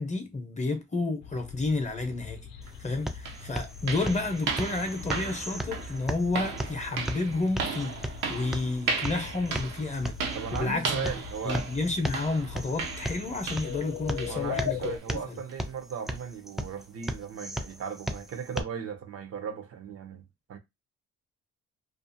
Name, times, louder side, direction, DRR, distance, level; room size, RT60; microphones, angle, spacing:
voice 1, 0.0-2.5 2.8-11.1 11.4-15.4, left 3 dB, 25° left, 0.7 m, -31 dB
sound 1, 1.2-15.0, left 8 dB, 80° left, 0.6 m, -41 dB
sound 2, 2.6-18.6, right 1 dB, ahead, 0.3 m, -37 dB
sound 3, 2.7-2.8 3.3-13.9 14.2-14.5 14.8-15.0 15.5-15.6 16.1-16.2, right 5 dB, 90° right, 0.7 m, -36 dB
voice 2, 10.3-11.7 14.3-20.2 20.5-20.6, right 7 dB, 50° right, 0.6 m, -37 dB
2.5 x 2.4 x 2.7 m
cardioid pair, 90°, 30 cm